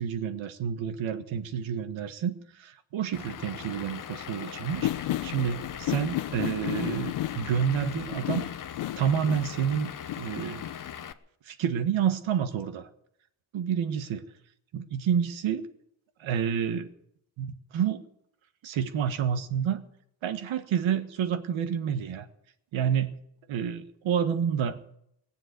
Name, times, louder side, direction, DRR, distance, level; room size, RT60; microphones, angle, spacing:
voice 1, 0.0-8.4 9.0-10.7 11.4-12.9 13.5-14.3 14.7-15.7 16.2-16.9 17.4-18.0 18.6-19.9 20.2-22.3 22.7-23.1 23.5-24.8, right 8 dB, 75° right, 10 dB, 1.6 m, -29 dB
Vehicle / Engine, 3.1-11.1, left 9 dB, 45° left, 0.9 m, -40 dB
sound 1, 4.7-10.9, left 14 dB, 65° left, 0.6 m, -34 dB
20.0 x 7.6 x 9.4 m, 0.73 s
cardioid pair, 150°, 47 cm